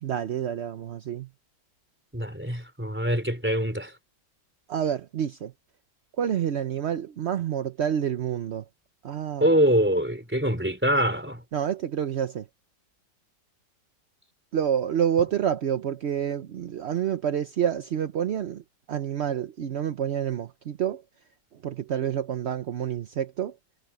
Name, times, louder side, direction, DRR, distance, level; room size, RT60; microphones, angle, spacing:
voice 1, 0.0-1.3 4.7-5.5 6.2-8.6 9.0-9.6 11.5-12.5 14.5-18.6 18.9-21.0 21.6-23.5, right 9 dB, 55° right, 0.8 m, -28 dB
voice 2, 2.1-3.9 9.4-11.4, equal, 5° right, 4.0 m, -24 dB
omnidirectional pair, 1.9 m